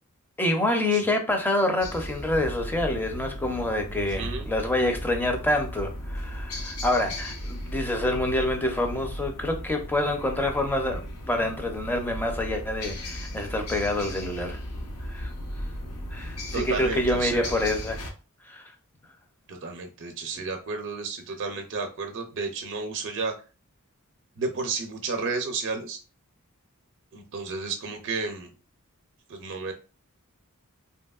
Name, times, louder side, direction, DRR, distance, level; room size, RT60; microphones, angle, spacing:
voice 1, 0.4-14.6 15.0-15.3 16.1-18.0 18.4-18.7, left 1 dB, 10° left, 0.5 m, -27 dB
sound 1, 1.8-18.1, equal, 85° left, 0.7 m, -36 dB
voice 2, 16.5-17.5 19.5-23.3 24.4-26.0 27.1-28.5 29.3-29.7, right 4 dB, 55° right, 0.5 m, -32 dB
2.8 x 2.7 x 2.3 m
head